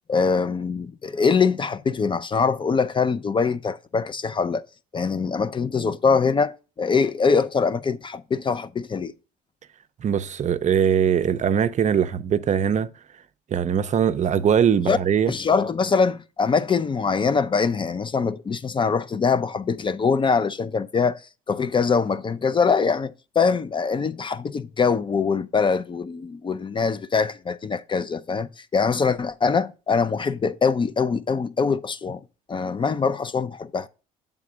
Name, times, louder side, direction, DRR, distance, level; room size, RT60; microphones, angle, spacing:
voice 1, 0.1-4.7 4.9-9.1 14.9-15.0 15.3-21.2 21.5-32.2 32.5-33.9, left 5 dB, 30° left, 0.4 m, -23 dB
voice 2, 10.0-12.9 13.5-15.3, right 8 dB, 45° right, 0.5 m, -21 dB
7.4 x 3.6 x 4.9 m
supercardioid pair, 75°, 17 cm